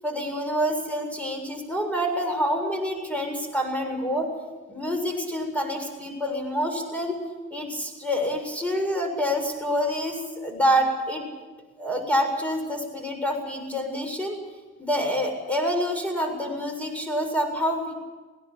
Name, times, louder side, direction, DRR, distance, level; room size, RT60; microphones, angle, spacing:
voice 1, 0.0-4.3 4.7-7.2 7.5-11.2 11.8-14.4 14.8-17.9, equal, 5° left, 3 dB, 7.3 m, -27 dB
21.0 x 18.0 x 8.8 m, 1.3 s
cardioid pair, 90°, 30 cm